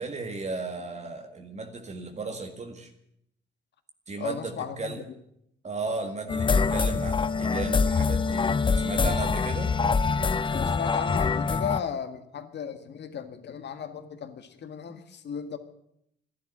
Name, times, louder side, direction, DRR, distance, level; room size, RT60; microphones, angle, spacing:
voice 1, 0.0-2.9 4.1-5.0 5.6-8.5 8.8-9.7, right 3 dB, 35° right, 4 dB, 1.9 m, -35 dB
voice 2, 4.2-5.0 10.5-15.6, left 7 dB, 60° left, 9 dB, 1.8 m, -35 dB
sound 1, 6.3-11.8, left 5 dB, 25° left, 0.5 m, -25 dB
13.0 x 11.0 x 9.8 m, 0.75 s
cardioid pair, 90°, 20 cm